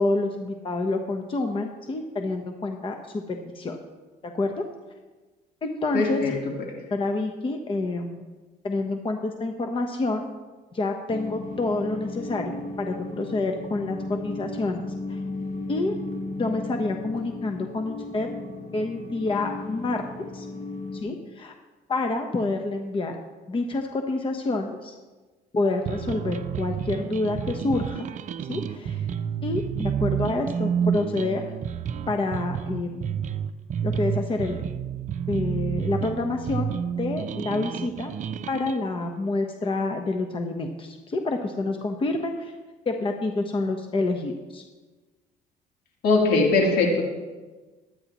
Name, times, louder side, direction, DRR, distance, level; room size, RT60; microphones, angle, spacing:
voice 1, 0.0-3.8 4.2-4.6 5.6-6.4 6.9-8.2 8.6-10.3 10.7-14.8 15.1-15.2 15.7-16.0 16.4-18.3 18.7-20.0 20.3-20.5 21.0-21.5 21.9-23.2 23.5-24.9 25.5-28.1 28.5-29.1 29.4-31.5 32.1-33.2 33.8-34.6 35.3-38.1 38.5-42.5 42.9-44.6, left 2 dB, 30° left, 4 dB, 1.1 m, -28 dB
voice 2, 5.9-6.3 46.0-47.0, left 3 dB, 70° left, -1 dB, 3.3 m, -20 dB
sound 1, 11.1-21.0, left 2 dB, 50° left, 4.0 m, -35 dB
sound 2, 25.9-38.8, right 8 dB, 50° right, 0.6 m, -30 dB
22.0 x 9.6 x 3.1 m, 1.3 s
cardioid pair, 110°, 17 cm